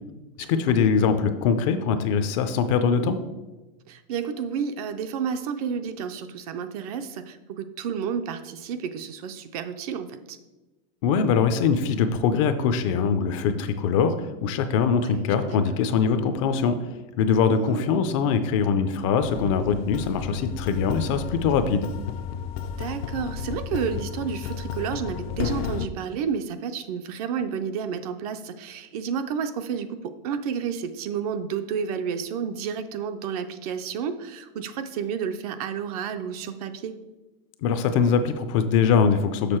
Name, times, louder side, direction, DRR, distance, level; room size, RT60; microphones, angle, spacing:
voice 1, 0.4-3.2 11.0-16.8 17.2-21.9 37.6-39.6, left 6 dB, 35° left, 9 dB, 0.4 m, -22 dB
voice 2, 3.9-10.4 15.0-15.6 17.5-18.1 22.8-36.9, right 7 dB, 40° right, 9 dB, 0.4 m, -31 dB
sound 1, 19.2-25.9, left 7 dB, 80° left, 0.6 m, -32 dB
6.6 x 6.0 x 4.4 m, 1.1 s
supercardioid pair, 160°, 30 cm